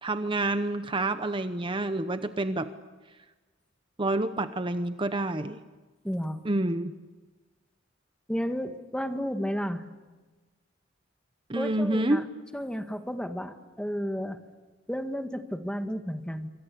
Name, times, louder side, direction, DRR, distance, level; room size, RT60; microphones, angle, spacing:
voice 1, 0.0-2.7 4.0-5.6 6.4-6.9 11.5-12.2, right 2 dB, 25° right, 10 dB, 0.9 m, -28 dB
voice 2, 6.0-6.4 8.3-9.8 11.5-12.2 12.5-14.4 14.9-16.5, equal, 5° left, 7 dB, 1.7 m, -32 dB
27.0 x 25.5 x 8.5 m, 1.3 s
head